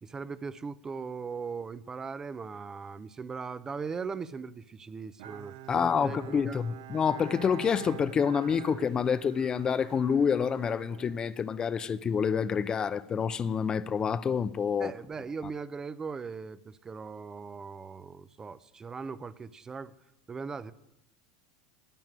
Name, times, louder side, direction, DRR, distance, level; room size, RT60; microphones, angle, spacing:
voice 1, 0.0-6.6 14.8-19.9 20.3-20.7, right 5 dB, 20° right, 0.7 m, -39 dB
Bowed string instrument, 5.2-11.9, right 14 dB, 70° right, 0.9 m, -46 dB
voice 2, 5.7-14.9, left 7 dB, 30° left, 0.6 m, -28 dB
12.5 x 9.0 x 9.0 m
hypercardioid pair, 100°, 3 cm